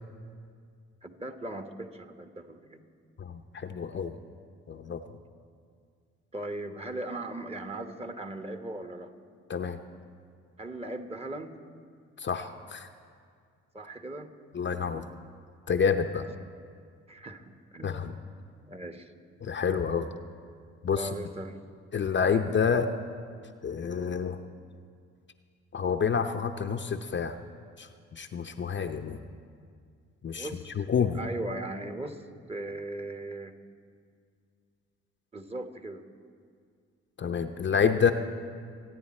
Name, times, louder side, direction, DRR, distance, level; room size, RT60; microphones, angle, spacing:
voice 1, 1.0-2.8 6.3-9.1 10.6-11.6 13.7-14.3 16.1-16.3 17.1-18.1 18.7-19.1 21.0-21.6 30.3-30.7 31.1-33.5 35.3-36.0, right 1 dB, 20° right, 7 dB, 1.2 m, -38 dB
voice 2, 3.2-4.2 4.7-5.2 9.5-9.8 12.2-12.9 14.5-15.1 15.7-16.2 17.8-18.1 19.4-20.1 20.8-21.1 21.9-22.9 23.6-24.4 25.7-27.4 27.8-29.2 30.2-30.5 30.8-31.2 37.2-38.1, left 6 dB, 40° left, 7 dB, 0.7 m, -28 dB
26.0 x 9.6 x 4.3 m, 2.2 s
supercardioid pair, 60°, 29 cm